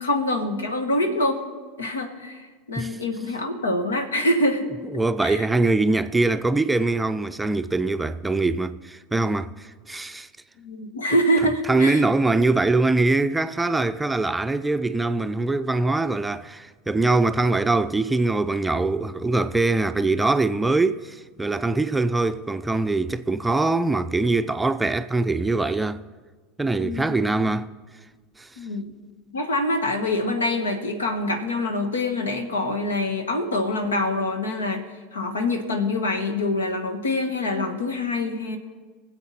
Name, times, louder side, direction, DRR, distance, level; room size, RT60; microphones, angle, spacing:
voice 1, 0.0-1.4 1.8-4.7 5.2-5.5 10.6-12.0 26.8-27.1 28.6-28.8 29.3-34.9 35.1-38.6, left 1 dB, 85° left, 1.3 m, -25 dB
voice 2, 4.9-10.3 11.7-26.0 26.6-27.7 28.4-28.5, right 2 dB, 10° right, 0.5 m, -23 dB
23.0 x 7.9 x 4.2 m
hypercardioid pair, 85°, 0 cm